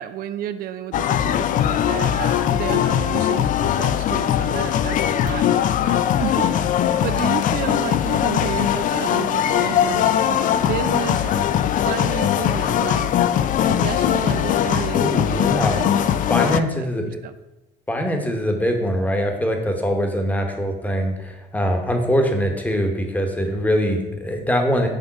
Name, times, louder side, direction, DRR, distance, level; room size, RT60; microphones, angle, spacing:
voice 1, 0.0-6.5 7.0-13.1 13.6-17.3, right 11 dB, 60° right, 11 dB, 0.4 m, -32 dB
sound 1, 0.9-16.6, left 10 dB, 50° left, 0.4 m, -20 dB
voice 2, 14.9-17.2 17.9-24.9, equal, 10° left, 4 dB, 1.1 m, -23 dB
6.3 x 3.6 x 5.9 m, 1.0 s
cardioid pair, 110°, 17 cm